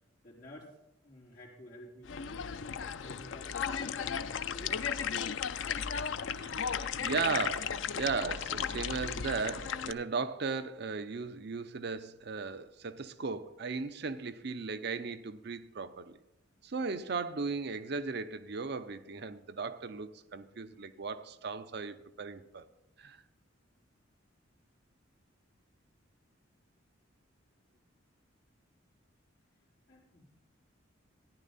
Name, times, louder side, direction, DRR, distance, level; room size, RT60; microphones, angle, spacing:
voice 1, 0.2-0.7 1.0-2.5 2.8-5.0 29.9-30.3, left 1 dB, 45° left, 4.4 m, -52 dB
sound 1, 2.1-9.9, left 7 dB, 70° left, 0.5 m, -35 dB
voice 2, 6.4-16.2 16.6-22.6 23.0-23.2, right 4 dB, 55° right, 0.5 m, -37 dB
14.5 x 10.0 x 4.1 m
head